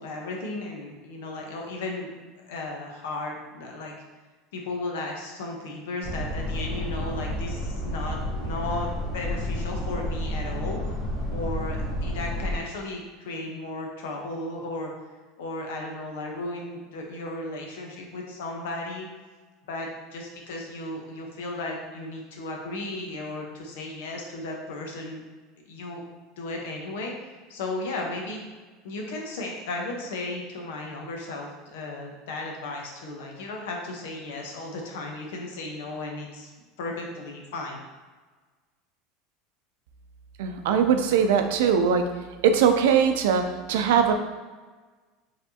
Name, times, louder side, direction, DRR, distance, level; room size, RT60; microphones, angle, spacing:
voice 1, 0.0-2.1 2.5-4.0 4.5-11.0 11.3-14.9 15.4-19.1 19.7-25.2 25.7-26.0 26.4-28.4 28.8-36.5 36.8-37.8, left 2 dB, 90° left, 1 dB, 0.9 m, -35 dB
sound 1, 6.0-12.6, left 1 dB, 5° right, 1.3 m, -30 dB
voice 2, 40.4-42.0 42.4-44.1, right 7 dB, 80° right, 6 dB, 0.4 m, -21 dB
4.5 x 3.4 x 2.8 m, 1.4 s
supercardioid pair, 170°, 0 cm